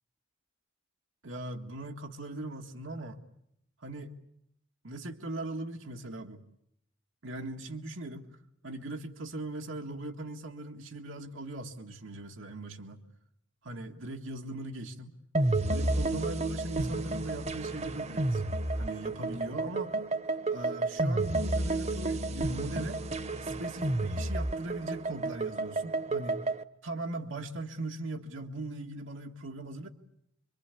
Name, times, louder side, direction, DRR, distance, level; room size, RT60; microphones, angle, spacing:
voice 1, 1.2-3.2 3.8-4.1 4.8-6.4 7.2-8.3 8.6-13.0 13.6-15.1 15.7-18.4 18.7-19.9 20.5-23.0 23.4-26.5 26.8-29.9, right 2 dB, 90° right, 3 dB, 1.8 m, -39 dB
sound 1, 15.3-26.6, right 2 dB, 35° right, 1.0 m, -31 dB
26.5 x 24.0 x 8.4 m, 0.74 s
head